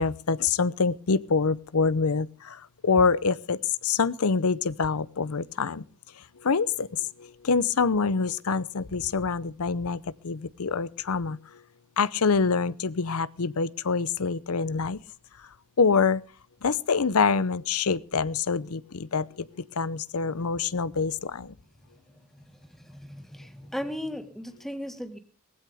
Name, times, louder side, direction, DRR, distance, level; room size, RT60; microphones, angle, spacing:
voice 1, 0.0-5.8 6.4-11.4 12.0-15.0 15.8-16.2 16.6-19.5 19.8-21.5, left 5 dB, 80° left, 18 dB, 0.7 m, -26 dB
voice 2, 23.1-25.2, equal, ahead, 7 dB, 1.7 m, -36 dB
19.0 x 15.5 x 3.5 m, 0.37 s
head